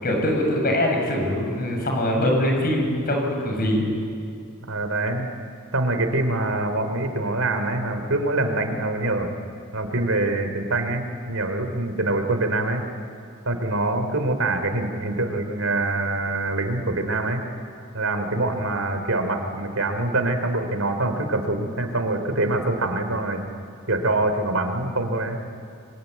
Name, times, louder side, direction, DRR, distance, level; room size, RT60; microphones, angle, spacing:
voice 1, 0.0-3.9, left 1 dB, 45° left, 1 dB, 7.2 m, -23 dB
voice 2, 4.6-5.3 5.7-9.3 9.7-12.8 13.4-17.4 17.9-23.4 23.9-25.4, right 2 dB, 85° right, 7 dB, 3.2 m, -24 dB
25.0 x 24.0 x 9.4 m, 2.5 s
head